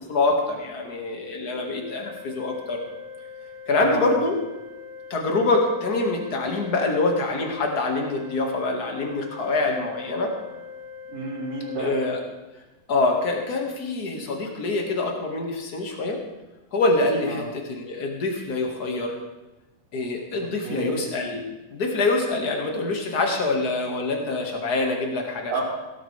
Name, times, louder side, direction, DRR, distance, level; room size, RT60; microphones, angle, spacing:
voice 1, 0.0-2.8 3.7-4.4 5.1-10.3 11.8-12.2 12.9-16.2 16.7-19.2 19.9-21.4 21.7-25.5, left 2 dB, 35° left, 1 dB, 1.7 m, -25 dB
Organ, 1.5-12.5, left 6 dB, 80° left, 3.9 m, -41 dB
voice 2, 3.8-4.1 11.1-11.9 17.3-17.4 20.6-21.0 25.5-25.6, right 3 dB, 50° right, -12 dB, 5.1 m, -30 dB
17.5 x 12.5 x 3.4 m, 1.1 s
omnidirectional pair, 3.9 m